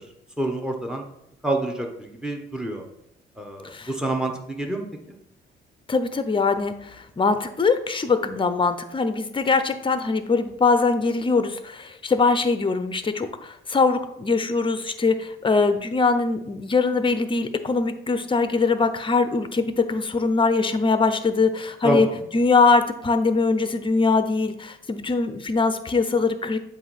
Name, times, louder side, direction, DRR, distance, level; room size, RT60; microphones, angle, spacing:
voice 1, 0.4-1.0 1.4-2.8 3.4-4.8 21.8-22.2, right 1 dB, 5° right, 3 dB, 1.3 m, -27 dB
voice 2, 5.9-22.1 22.3-26.6, left 4 dB, 25° left, 10 dB, 0.7 m, -22 dB
7.7 x 2.7 x 5.9 m, 0.77 s
cardioid pair, 90°, 20 cm